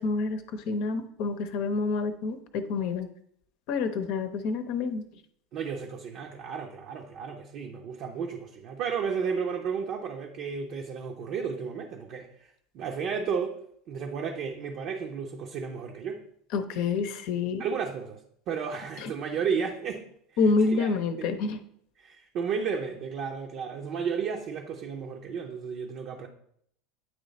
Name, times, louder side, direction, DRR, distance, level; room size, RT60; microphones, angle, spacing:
voice 1, 0.0-3.1 3.7-5.0 16.5-17.6 19.0-19.1 20.4-21.6, left 4 dB, 60° left, 0.7 m, -28 dB
voice 2, 5.5-13.6 13.9-16.2 17.6-18.2 18.5-20.1 20.7-20.9 21.2-21.3 22.0-26.3, right 6 dB, 50° right, 0.7 m, -33 dB
9.2 x 3.2 x 4.1 m
hypercardioid pair, 80°, 0 cm